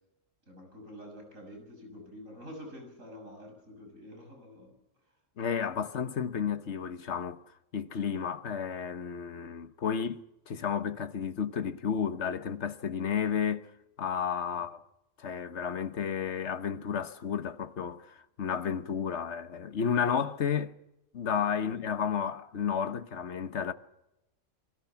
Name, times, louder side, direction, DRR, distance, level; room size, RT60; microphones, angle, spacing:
voice 1, 0.5-4.7 14.5-14.6, equal, 75° right, 7.0 m, -47 dB
voice 2, 5.4-7.4 7.7-13.7 14.0-14.8 15.2-20.7 21.1-23.7, left 7 dB, 60° left, 1.4 m, -32 dB
28.0 x 22.0 x 5.9 m
omnidirectional pair, 1.4 m